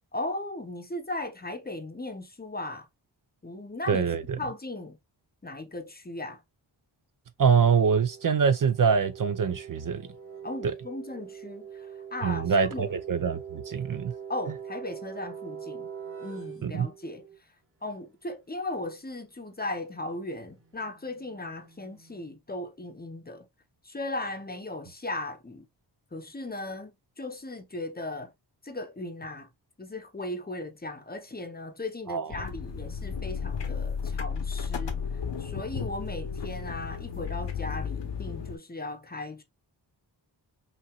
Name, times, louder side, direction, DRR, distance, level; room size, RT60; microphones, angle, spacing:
voice 1, 0.1-2.9 3.4-4.1 4.4-5.0 5.4-6.4 10.4-12.9 14.3-15.9 16.2-17.3 17.8-23.5 23.8-25.7 26.1-28.3 28.6-29.5 29.8-35.0 35.4-39.4, left 2 dB, 20° left, 0.8 m, -37 dB
voice 2, 3.9-4.4 7.4-10.1 10.6-10.7 12.2-14.1 16.6-16.9 32.1-32.4, right 6 dB, 45° right, 0.5 m, -24 dB
sound 1, 7.4-17.4 19.5-22.2, right 7 dB, 30° right, 1.3 m, -44 dB
sound 2, 32.3-38.6, left 6 dB, 70° left, 1.0 m, -33 dB
5.7 x 2.8 x 2.3 m
wide cardioid pair, 105°, 44 cm